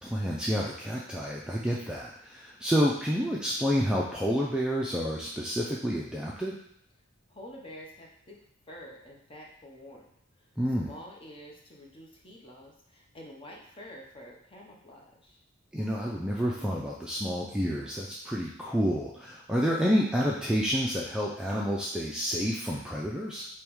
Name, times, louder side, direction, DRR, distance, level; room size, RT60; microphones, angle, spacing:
voice 1, 0.0-6.5 10.6-10.9 15.7-23.5, equal, 5° right, -4 dB, 0.3 m, -29 dB
voice 2, 7.3-8.4 8.7-10.1 10.4-15.4, equal, 25° left, -2 dB, 0.8 m, -48 dB
3.5 x 3.1 x 4.6 m, 0.71 s
head